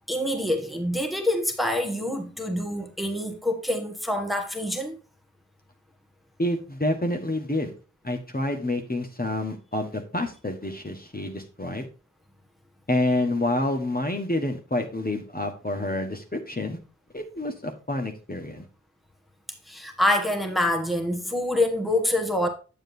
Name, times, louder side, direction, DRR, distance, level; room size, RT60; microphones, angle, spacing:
voice 1, 0.1-5.0 19.7-22.5, left 1 dB, ahead, 1.4 m, -26 dB
voice 2, 6.4-7.7 8.0-11.9 12.9-16.8 17.1-18.6, left 1 dB, 30° left, 1.4 m, -28 dB
8.9 x 7.4 x 2.7 m
wide cardioid pair, 50°, 30 cm